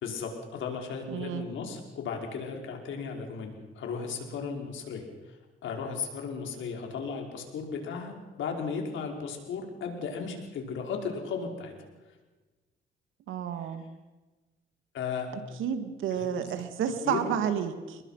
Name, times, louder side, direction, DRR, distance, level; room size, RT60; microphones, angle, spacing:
voice 1, 0.0-5.4 5.6-11.7 14.9-15.3 16.1-16.4 17.0-17.2, left 5 dB, 75° left, 2 dB, 5.2 m, -35 dB
voice 2, 1.1-1.5 13.3-13.8 15.6-18.0, right 8 dB, 85° right, 8 dB, 2.5 m, -31 dB
28.5 x 21.5 x 5.9 m, 1.2 s
cardioid pair, 90°, 20 cm